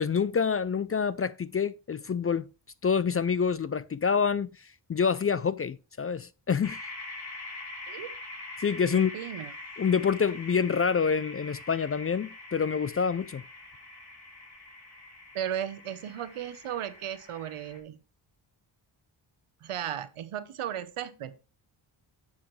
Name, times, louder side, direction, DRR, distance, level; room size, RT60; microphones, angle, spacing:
voice 1, 0.0-2.5 2.8-6.8 8.6-9.1 9.8-13.4, left 6 dB, 30° left, 0.4 m, -27 dB
sound 1, 6.6-17.8, left 2 dB, 50° left, 3.5 m, -44 dB
voice 2, 8.9-9.5 15.3-18.0 19.6-21.3, right 10 dB, 85° right, 1.0 m, -35 dB
10.5 x 7.3 x 3.2 m
cardioid pair, 75°, 49 cm